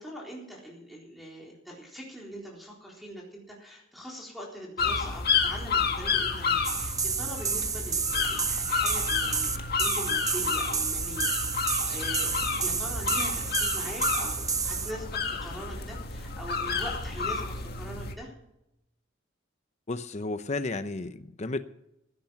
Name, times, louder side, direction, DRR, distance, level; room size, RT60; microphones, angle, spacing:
voice 1, 0.0-9.5 9.8-18.3, equal, ahead, -3 dB, 3.9 m, -42 dB
sound 1, 4.8-18.1, left 5 dB, 55° left, 1.8 m, -30 dB
sound 2, 6.6-14.9, right 6 dB, 20° right, 0.7 m, -30 dB
voice 2, 19.9-21.6, left 2 dB, 35° left, 10 dB, 0.7 m, -32 dB
16.0 x 10.5 x 5.8 m, 0.84 s
head